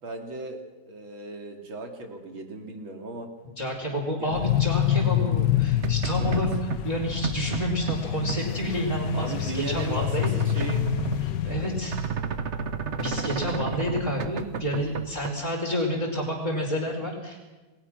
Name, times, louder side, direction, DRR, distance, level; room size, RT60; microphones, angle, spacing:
voice 1, 0.0-3.3 4.2-4.3 6.2-6.4 9.1-10.8 11.4-11.7, right 3 dB, 80° right, 3 dB, 3.7 m, -37 dB
voice 2, 3.6-10.4 11.5-11.9 12.9-17.4, equal, 15° left, -5 dB, 4.4 m, -29 dB
sound 1, 4.3-12.2, left 13 dB, 65° left, 1.5 m, -27 dB
sound 2, 5.8-15.3, right 6 dB, 45° right, 1.1 m, -32 dB
29.5 x 20.0 x 6.3 m, 1.2 s
omnidirectional pair, 2.2 m